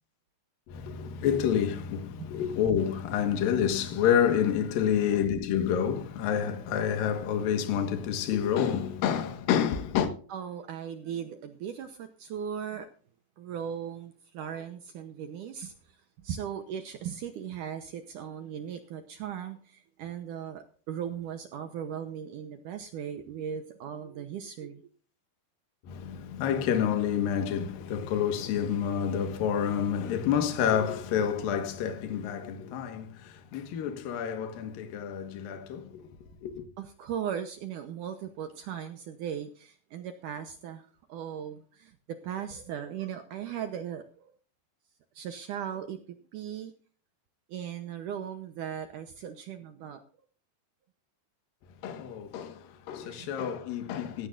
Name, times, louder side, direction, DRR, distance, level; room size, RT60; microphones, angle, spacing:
voice 1, 0.7-10.1 25.8-36.1 36.4-36.7 51.8-54.3, left 8 dB, 65° left, 3.0 m, -28 dB
voice 2, 10.3-12.9 13.4-24.8 36.8-44.3 45.1-46.0 46.3-46.7 47.5-50.0 53.0-53.3, right 8 dB, 75° right, 2.0 m, -38 dB
16.0 x 15.5 x 2.6 m
omnidirectional pair, 4.8 m